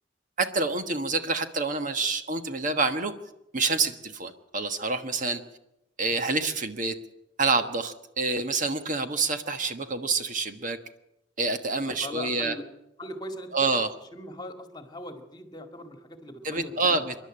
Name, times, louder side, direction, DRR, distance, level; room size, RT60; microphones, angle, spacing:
voice 1, 0.4-3.1 3.5-5.4 6.0-6.9 7.4-10.8 11.4-12.5 13.5-13.9 16.4-17.1, right 3 dB, 45° right, 8 dB, 1.4 m, -27 dB
voice 2, 11.7-12.7 13.0-13.5 14.1-17.0, left 1 dB, 25° left, 6 dB, 2.0 m, -40 dB
27.5 x 11.5 x 8.8 m, 0.87 s
head